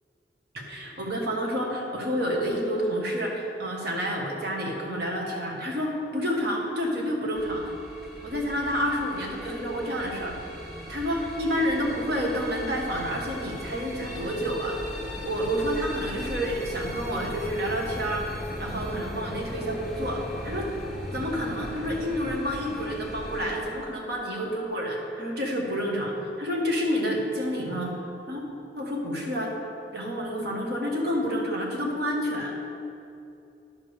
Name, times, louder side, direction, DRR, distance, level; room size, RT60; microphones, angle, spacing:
voice 1, 0.5-7.7 8.2-10.4 10.9-14.9 15.2-20.7 21.1-27.9 28.3-28.4 28.8-29.6 29.9-32.5, equal, 60° right, -1 dB, 1.7 m, -29 dB
sound 1, 7.3-23.6, equal, 5° right, 1.8 m, -38 dB
10.5 x 5.3 x 6.6 m, 2.7 s
head